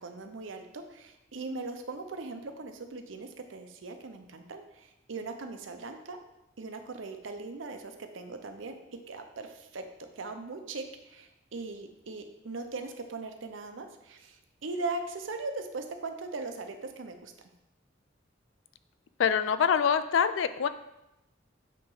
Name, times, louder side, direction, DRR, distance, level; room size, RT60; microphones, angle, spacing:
voice 1, 0.0-6.2 6.6-8.7 9.1-17.3, right 3 dB, 90° right, 6 dB, 0.6 m, -39 dB
voice 2, 19.2-20.7, left 7 dB, 80° left, 12 dB, 0.3 m, -25 dB
8.3 x 3.0 x 3.9 m, 0.91 s
head